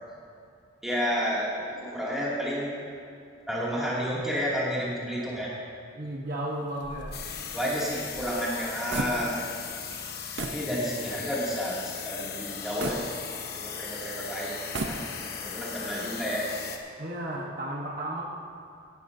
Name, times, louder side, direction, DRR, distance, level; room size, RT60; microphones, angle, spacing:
voice 1, 0.8-2.7 3.5-5.5 7.5-9.3 10.4-11.8 12.0-13.0 13.5-15.0 15.4-16.4, equal, ahead, -8 dB, 2.5 m, -31 dB
voice 2, 5.9-7.2 17.0-18.2, right 1 dB, 50° right, -3 dB, 1.2 m, -34 dB
sound 1, 6.8-9.6 9.9-10.0 10.4-10.7 11.2-11.3 12.8-13.8 14.5-15.4, right 3 dB, 70° right, 0.8 m, -36 dB
sound 2, 7.1-16.8, left 6 dB, 50° left, 0.9 m, -38 dB
16.5 x 12.0 x 2.7 m, 2.5 s
head